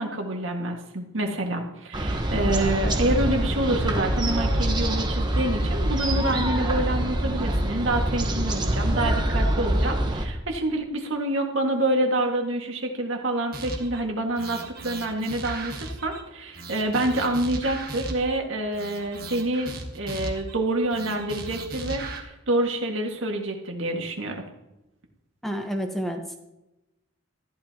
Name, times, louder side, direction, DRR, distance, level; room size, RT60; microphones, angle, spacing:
voice 1, 0.0-24.5, right 1 dB, 80° right, 2 dB, 2.0 m, -27 dB
sound 1, 1.9-10.3, right 1 dB, 20° right, 1.1 m, -25 dB
sound 2, 13.5-14.0 14.4-16.2 16.5-18.4 18.7-20.6 20.9-22.2, right 2 dB, 50° right, 1.6 m, -37 dB
voice 2, 25.4-26.4, equal, ahead, 3 dB, 1.0 m, -29 dB
14.0 x 11.5 x 3.0 m, 0.95 s
head